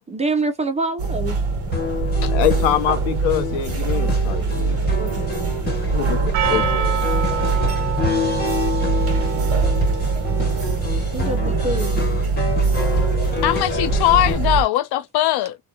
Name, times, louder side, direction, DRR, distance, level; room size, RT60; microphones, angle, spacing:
voice 1, 0.1-1.4 5.0-5.5 11.1-12.0, right 2 dB, 15° right, 0.4 m, -26 dB
sound 1, 1.0-14.6, right 4 dB, 30° right, 1.2 m, -23 dB
sound 2, 1.7-14.3, left 3 dB, 20° left, 1.2 m, -28 dB
voice 2, 2.2-4.8 5.9-7.0, left 11 dB, 90° left, 0.8 m, -24 dB
Percussion, 6.3-10.9, right 11 dB, 80° right, 0.6 m, -28 dB
voice 3, 13.4-15.6, left 14 dB, 60° left, 0.5 m, -20 dB
2.8 x 2.2 x 2.3 m
cardioid pair, 135°, 45 cm